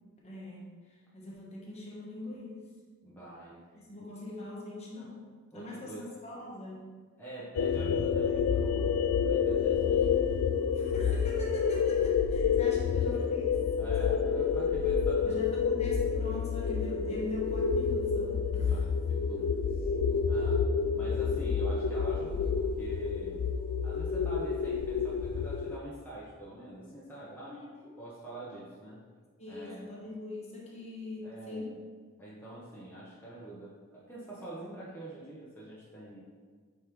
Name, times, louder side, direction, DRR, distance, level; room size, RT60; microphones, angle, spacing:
voice 1, 0.2-2.7 3.7-5.2 5.5-6.9 10.7-13.6 15.2-18.9 27.4-27.9 29.4-31.8, left 2 dB, 30° left, -4 dB, 1.1 m, -41 dB
voice 2, 3.0-3.6 4.0-4.1 5.5-6.1 7.2-8.9 9.2-10.1 13.8-15.4 18.6-19.9 20.3-20.7 20.9-23.4 23.8-27.6 28.0-29.0 29.5-29.8 31.2-31.7 32.2-36.2, right 2 dB, 10° left, -8 dB, 0.9 m, -45 dB
sound 1, 7.6-25.8, left 6 dB, 85° left, 0.3 m, -29 dB
8.5 x 3.5 x 3.1 m, 1.5 s
head